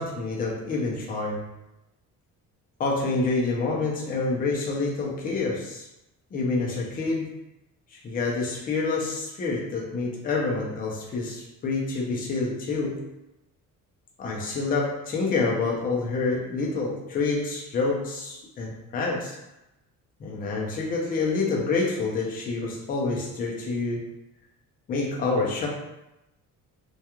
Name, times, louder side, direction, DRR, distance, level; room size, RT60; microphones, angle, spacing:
voice 1, 0.0-1.4 2.8-5.9 6.3-7.3 7.9-13.0 14.2-19.3 20.2-24.0 24.9-25.7, left 3 dB, 25° left, -2 dB, 0.4 m, -27 dB
2.3 x 2.3 x 2.9 m, 0.91 s
cardioid pair, 160°, 34 cm